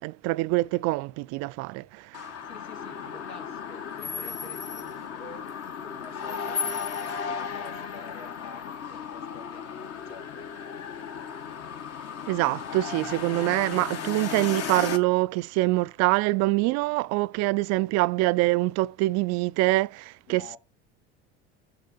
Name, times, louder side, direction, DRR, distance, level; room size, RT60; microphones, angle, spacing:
voice 1, 0.0-2.2 12.3-20.6, right 20 dB, 55° right, 0.4 m, -25 dB
sound 1, 2.1-15.0, left 6 dB, 45° left, 1.4 m, -35 dB
voice 2, 2.5-10.4 20.3-20.6, left 4 dB, 85° left, 2.2 m, -48 dB
6.8 x 6.2 x 6.7 m
hypercardioid pair, 75°, 32 cm